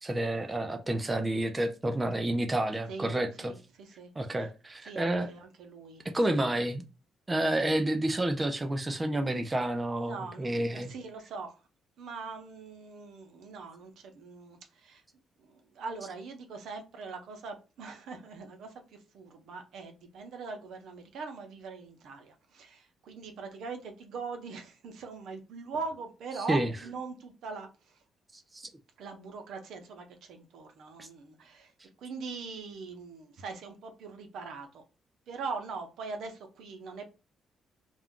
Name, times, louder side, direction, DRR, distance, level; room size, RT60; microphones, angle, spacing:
voice 1, 0.0-3.5 4.2-5.3 6.0-6.8 7.3-10.9 26.5-26.7 28.3-28.7 31.0-31.1, right 1 dB, 20° right, 0.4 m, -30 dB
voice 2, 3.4-4.1 4.8-6.5 10.0-11.5 12.0-15.0 15.4-28.0 29.0-31.7 32.0-34.8 35.3-37.1, right 4 dB, 75° right, 0.7 m, -42 dB
2.4 x 2.2 x 3.5 m
cardioid pair, 90°, 0 cm